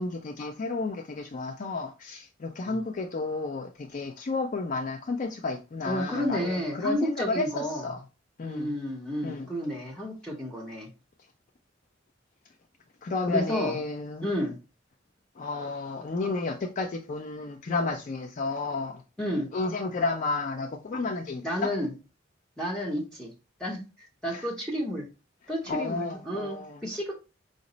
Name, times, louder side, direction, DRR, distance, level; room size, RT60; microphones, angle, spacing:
voice 1, 0.0-8.0 8.4-8.7 9.2-9.5 13.0-14.3 15.4-19.0 19.5-21.7 24.3-24.5 25.7-26.8, left 3 dB, 40° left, 0.4 m, -32 dB
voice 2, 5.9-7.9 8.4-10.9 13.3-13.8 14.2-14.5 19.2-19.5 21.4-21.9 22.6-23.3 23.6-25.0 25.5-27.1, equal, 5° left, 0.8 m, -31 dB
5.1 x 2.0 x 3.8 m
head